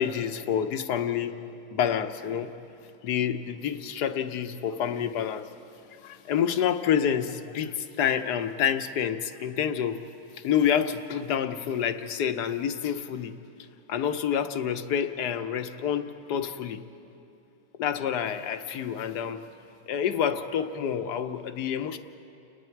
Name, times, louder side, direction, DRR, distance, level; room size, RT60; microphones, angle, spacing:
voice 1, 0.0-1.3 1.7-2.5 3.0-5.5 5.9-10.0 10.3-13.3 13.9-16.8 17.8-19.4 19.9-22.0, left 8 dB, 60° left, 8 dB, 1.2 m, -28 dB
29.5 x 20.5 x 4.6 m, 3.0 s
omnidirectional pair, 2.3 m